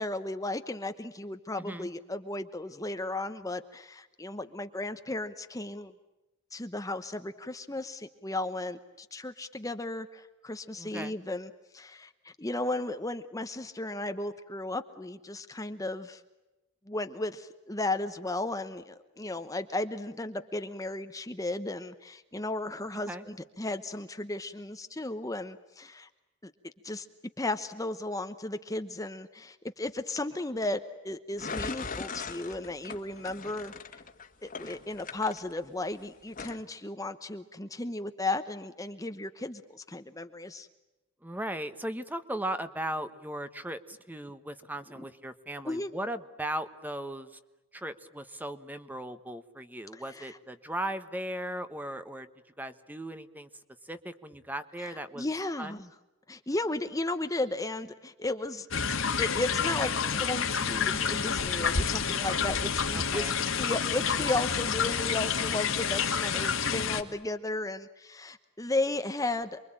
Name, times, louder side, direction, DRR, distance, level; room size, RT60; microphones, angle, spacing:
voice 1, 0.0-5.9 6.5-16.2 16.9-26.1 26.4-27.1 27.4-34.0 34.4-40.7 45.0-45.1 45.7-45.9 49.9-50.4 54.8-55.9 56.3-58.7 59.2-63.2 63.5-69.6, left 2 dB, 15° left, 9 dB, 1.0 m, -35 dB
voice 2, 1.6-1.9 10.8-11.1 23.0-23.2 41.2-47.4 47.7-52.3 52.6-53.5 53.8-55.3 55.6-55.8 62.9-63.5, right 1 dB, 10° right, 10 dB, 1.2 m, -37 dB
sound 1, 31.4-35.9 36.3-36.6, left 4 dB, 40° left, 1.8 m, -39 dB
sound 2, 58.7-67.0, left 6 dB, 70° left, 2.1 m, -29 dB
28.0 x 23.0 x 8.9 m, 1.0 s
head